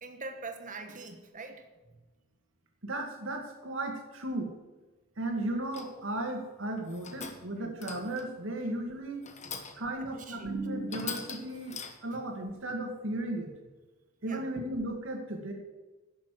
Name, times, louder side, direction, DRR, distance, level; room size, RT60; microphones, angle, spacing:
voice 1, 0.0-1.6 7.3-7.7 8.6-8.7 10.1-10.5 12.1-12.2 14.2-14.5, right 3 dB, 35° right, 6 dB, 1.3 m, -44 dB
voice 2, 2.8-4.5 5.2-9.2 9.8-13.5 14.2-15.5, right 1 dB, 60° right, 3 dB, 2.1 m, -35 dB
sound 1, 5.7-6.1 6.8-7.5 7.8-8.4 9.2-9.9 10.4-10.5 10.9-12.2, left 6 dB, 30° left, 1.1 m, -42 dB
11.5 x 7.1 x 7.7 m, 1.2 s
head